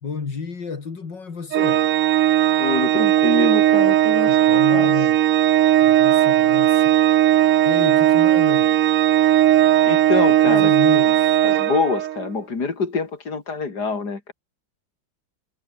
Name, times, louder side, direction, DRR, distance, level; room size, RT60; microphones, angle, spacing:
voice 1, 0.0-1.9 4.3-5.3 5.8-7.0 7.6-8.8 10.4-11.4, left 5 dB, 75° left, 3.4 m, -31 dB
Organ, 1.5-12.3, right 12 dB, 65° right, 0.8 m, -17 dB
voice 2, 2.6-4.9 9.9-10.7 11.4-14.3, left 4 dB, 60° left, 4.0 m, -25 dB
omnidirectional pair, 1.9 m